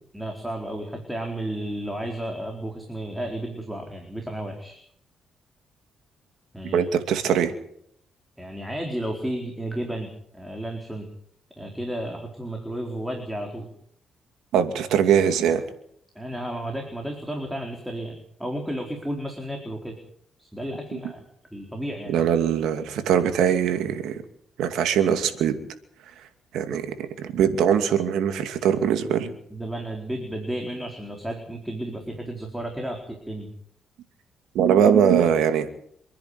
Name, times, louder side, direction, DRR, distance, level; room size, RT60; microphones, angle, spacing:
voice 1, 0.1-4.8 6.5-6.8 8.4-10.1 10.3-11.1 11.6-13.7 16.1-20.0 20.4-21.2 21.5-22.2 29.5-33.5, right 1 dB, 5° right, 2 dB, 4.4 m, -32 dB
voice 2, 6.7-7.5 14.5-15.6 22.1-24.2 24.6-25.6 26.5-26.9 27.2-29.3 34.5-35.7, right 8 dB, 90° right, 8 dB, 2.5 m, -21 dB
27.5 x 10.5 x 9.6 m, 0.66 s
cardioid pair, 95°, 0 cm